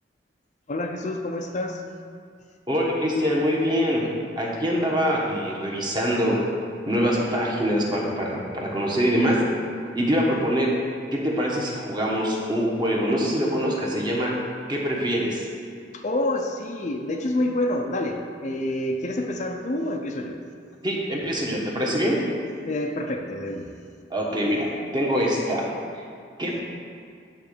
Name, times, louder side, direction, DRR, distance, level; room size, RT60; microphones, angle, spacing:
voice 1, 0.7-1.8 15.9-20.4 22.6-23.7, left 1 dB, 40° left, 3 dB, 0.5 m, -28 dB
voice 2, 2.7-6.4 6.9-9.4 9.9-10.7 11.1-14.3 14.7-15.4 20.8-22.2 24.1-25.7 25.9-26.0 26.4-26.6, equal, 25° right, -3 dB, 1.3 m, -24 dB
9.1 x 3.8 x 6.7 m, 2.3 s
head